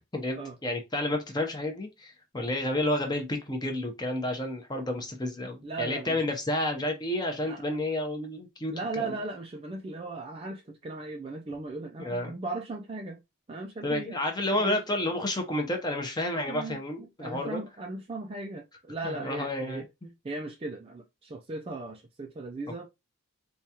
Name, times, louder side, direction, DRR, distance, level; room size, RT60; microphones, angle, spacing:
voice 1, 0.1-9.1 12.0-12.3 13.8-17.6 19.0-20.1, left 1 dB, 20° left, 0.7 m, -30 dB
voice 2, 5.6-6.2 7.4-7.6 8.7-13.2 13.5-14.2 14.5-14.8 16.5-19.8 20.2-22.9, right 3 dB, 25° right, 0.3 m, -37 dB
4.6 x 2.3 x 2.8 m
head